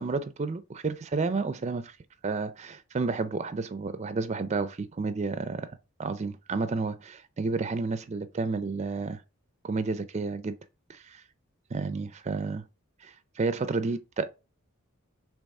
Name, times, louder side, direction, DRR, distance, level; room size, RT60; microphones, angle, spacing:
voice 1, 0.0-2.0 2.2-5.7 6.0-9.2 9.6-10.5 10.9-11.2 11.7-12.6 13.0-14.3, right 3 dB, 30° right, 0.4 m, -31 dB
7.0 x 3.0 x 5.3 m
head